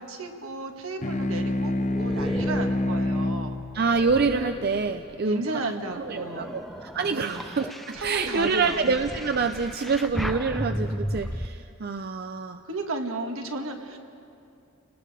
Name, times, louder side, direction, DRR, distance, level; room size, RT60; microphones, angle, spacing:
voice 1, 0.0-3.7 5.2-6.6 7.1-7.4 7.9-9.0 12.6-14.0, right 2 dB, 75° right, 4 dB, 1.7 m, -33 dB
sound 1, 1.0-5.9, left 1 dB, 35° left, 0.8 m, -29 dB
sound 2, 1.1-5.3 5.8-11.5, equal, ahead, 0.6 m, -36 dB
voice 2, 3.7-5.6 6.0-12.6, right 4 dB, 45° right, 8 dB, 0.5 m, -27 dB
29.5 x 19.0 x 4.9 m, 2.6 s
head